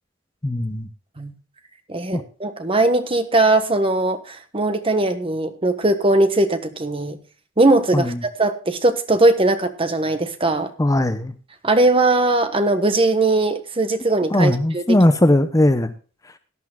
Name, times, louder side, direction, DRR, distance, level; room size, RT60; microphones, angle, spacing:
voice 1, 0.4-0.9 2.1-2.2 7.9-8.2 10.8-11.3 14.3-15.9, left 1 dB, 15° left, 10 dB, 0.7 m, -18 dB
voice 2, 1.9-7.2 7.6-10.7 11.6-15.0, right 2 dB, 30° right, 9 dB, 1.3 m, -19 dB
17.5 x 11.5 x 2.3 m, 0.38 s
head